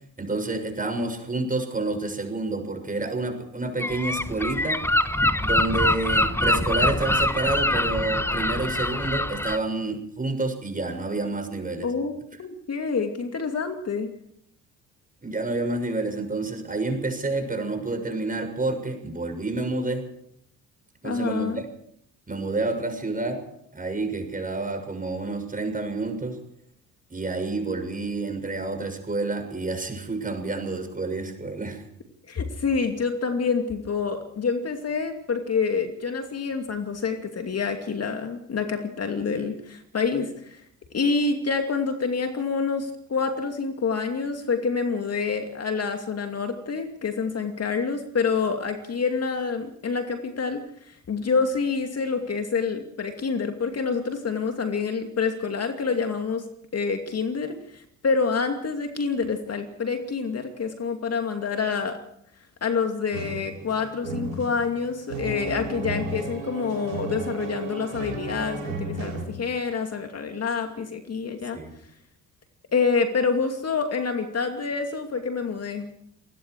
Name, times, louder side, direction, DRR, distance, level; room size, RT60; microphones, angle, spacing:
voice 1, 0.2-4.8 5.4-11.9 15.2-20.1 21.0-21.6 22.3-23.4 23.7-26.4 27.1-31.9 71.5-71.7, right 2 dB, 20° right, 5 dB, 6.8 m, -29 dB
Gull seagull, 3.8-9.6, left 1 dB, 5° left, 1.2 m, -24 dB
voice 2, 11.8-12.1 12.4-14.1 21.0-21.6 32.3-40.6 40.9-50.6 50.9-56.4 56.7-62.0 62.6-71.6 72.7-75.9, left 5 dB, 40° left, 5 dB, 2.6 m, -27 dB
sound 1, 63.1-69.2, right 3 dB, 80° right, 6.8 m, -33 dB
28.0 x 20.5 x 4.8 m, 0.71 s
figure-of-eight pair, 50°, 39 cm